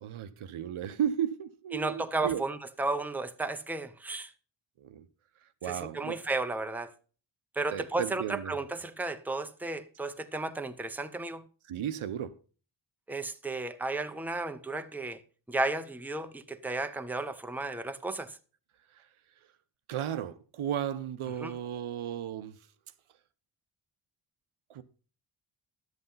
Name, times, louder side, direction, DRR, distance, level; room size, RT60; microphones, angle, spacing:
voice 1, 0.0-2.4 4.8-5.1 5.6-6.2 7.7-8.5 11.7-12.3 18.9-19.1 19.9-22.6 24.7-24.8, right 9 dB, 75° right, 1.0 m, -34 dB
voice 2, 1.7-4.3 5.7-6.9 7.5-11.4 13.1-15.2 15.5-18.4 21.4-21.5, right 2 dB, 5° right, 0.8 m, -33 dB
11.5 x 8.1 x 5.5 m
wide cardioid pair, 120°, 50 cm